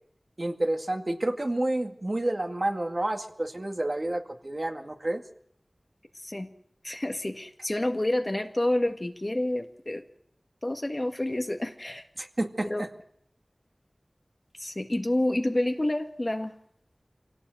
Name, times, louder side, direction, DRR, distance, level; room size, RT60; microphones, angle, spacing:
voice 1, 0.4-5.2 12.2-12.9, right 1 dB, 45° right, 5 dB, 2.1 m, -29 dB
voice 2, 6.8-10.0 10.6-12.0 12.6-12.8 14.6-16.5, left 1 dB, 35° left, 5 dB, 1.7 m, -28 dB
25.5 x 17.5 x 7.9 m, 0.68 s
wide cardioid pair, 45°, 0 cm